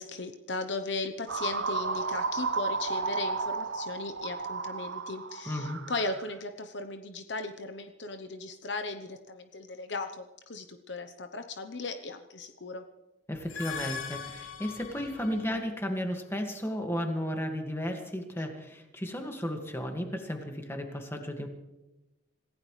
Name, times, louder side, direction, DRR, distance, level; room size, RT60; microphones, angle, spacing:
voice 1, 0.0-12.8, left 3 dB, 60° left, 7 dB, 0.9 m, -37 dB
sound 1, 1.3-6.3, right 4 dB, 70° right, 1.0 m, -33 dB
voice 2, 5.5-5.9 13.3-21.5, equal, 10° left, 3 dB, 1.9 m, -34 dB
sound 2, 13.3-15.6, left 7 dB, 90° left, 1.8 m, -40 dB
26.5 x 16.0 x 3.3 m, 1.0 s
head